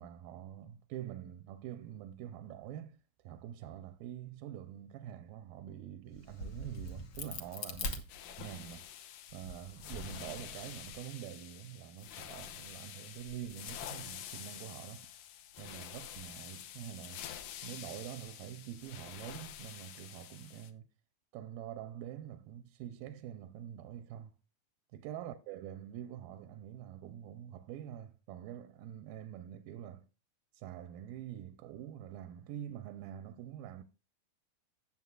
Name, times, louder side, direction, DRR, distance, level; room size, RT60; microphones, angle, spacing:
voice 1, 0.0-3.0 3.2-8.0 8.3-8.9 9.3-15.1 15.6-17.3 17.6-20.9 21.3-24.3 24.9-30.1 30.5-33.8, right 11 dB, 85° right, 2.4 m, -46 dB
Crack, 6.1-8.8 9.3-11.0, left 2 dB, 90° left, 1.1 m, -43 dB
sound 1, 8.1-20.7, left 10 dB, 70° left, 2.0 m, -48 dB
17.0 x 7.3 x 2.4 m
omnidirectional pair, 4.1 m